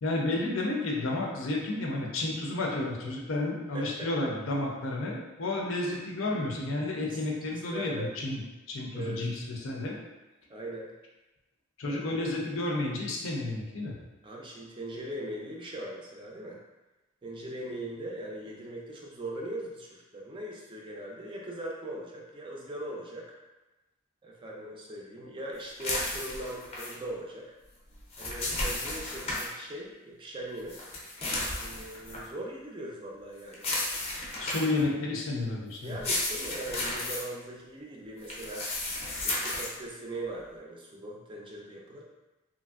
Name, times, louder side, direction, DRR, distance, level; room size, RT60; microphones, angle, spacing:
voice 1, 0.0-8.4 8.7-10.0 11.8-13.9 34.4-36.0, left 2 dB, 75° left, -1 dB, 0.6 m, -31 dB
voice 2, 3.7-4.1 7.0-8.1 8.9-9.2 10.5-10.9 11.8-12.3 14.2-16.6 17.2-23.3 24.2-27.5 28.2-30.8 31.6-33.7 35.8-38.7 39.2-42.0, right 1 dB, 25° right, -2 dB, 0.4 m, -40 dB
sound 1, 25.8-26.9 27.9-29.5 30.7-32.3 33.5-34.8 35.8-37.2 38.2-39.7, left 2 dB, 30° left, 0.5 m, -33 dB
3.1 x 2.5 x 2.3 m, 1.1 s
head